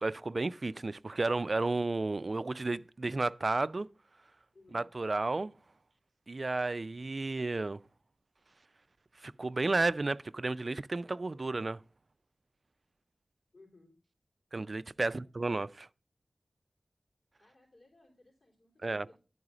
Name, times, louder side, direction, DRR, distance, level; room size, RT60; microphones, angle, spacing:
voice 1, 0.0-3.9 4.7-5.5 6.3-7.8 9.2-11.8 14.5-15.9 18.8-19.1, right 3 dB, 55° right, 0.3 m, -32 dB
voice 2, 4.5-4.8 13.5-13.9 15.0-15.3 17.4-19.2, left 2 dB, 55° left, 3.6 m, -61 dB
11.0 x 4.8 x 4.9 m
wide cardioid pair, 60°, 0 cm